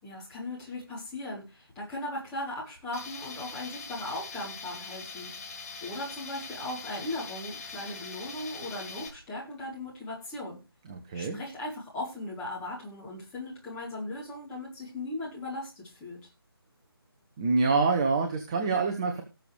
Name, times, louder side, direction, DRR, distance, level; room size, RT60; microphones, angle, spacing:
voice 1, 0.0-10.6 11.1-16.3, left 1 dB, 10° left, -5 dB, 3.6 m, -38 dB
Tools, 2.9-9.1, left 4 dB, 35° left, 3.1 m, -42 dB
voice 2, 10.9-11.4 17.4-19.2, right 4 dB, 15° right, 5 dB, 0.7 m, -26 dB
18.5 x 6.6 x 3.4 m, 0.28 s
figure-of-eight pair, 155°, 13 cm